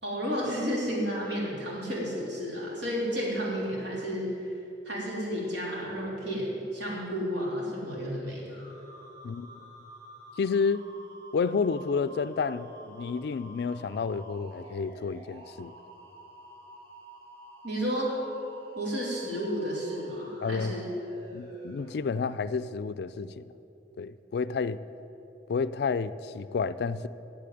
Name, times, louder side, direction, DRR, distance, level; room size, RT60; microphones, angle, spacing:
voice 1, 0.0-4.5 4.8-8.6 17.6-18.1 18.7-20.9, equal, 75° right, 3.3 m, -32 dB
sound 1, 8.5-22.3, right 1 dB, 30° right, 3.1 m, -50 dB
voice 2, 9.2-9.6 10.4-10.9 11.3-15.7 20.4-20.7 21.3-23.4 24.0-24.8 25.5-27.1, left 5 dB, 65° left, 0.4 m, -30 dB
8.5 x 8.2 x 9.2 m
head